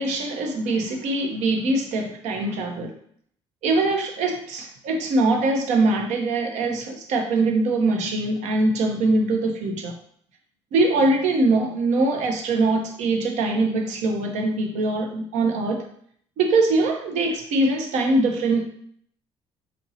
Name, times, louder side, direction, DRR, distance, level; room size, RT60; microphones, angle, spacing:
voice 1, 0.0-2.9 3.6-9.9 10.7-15.8 16.4-18.6, right 2 dB, 80° right, 3 dB, 0.8 m, -22 dB
4.5 x 2.9 x 2.7 m, 0.63 s
cardioid pair, 85°, 12 cm